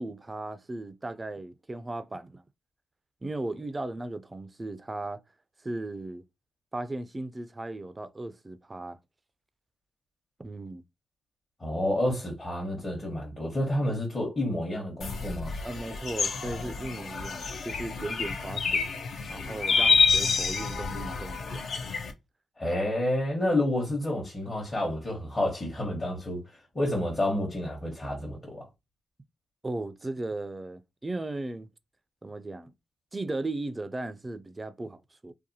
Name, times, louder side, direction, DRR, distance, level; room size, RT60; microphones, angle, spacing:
voice 1, 0.0-2.4 3.2-5.2 5.6-6.2 6.7-9.0 10.4-10.8 15.6-18.9 19.3-21.7 29.6-31.7 32.2-32.7 33.1-35.3, right 2 dB, 25° right, 0.3 m, -36 dB
voice 2, 11.6-15.6 22.6-28.7, left 1 dB, 35° left, 1.0 m, -29 dB
sound 1, 15.0-22.1, left 4 dB, 65° left, 0.4 m, -28 dB
2.7 x 2.2 x 2.7 m
supercardioid pair, 45°, 0 cm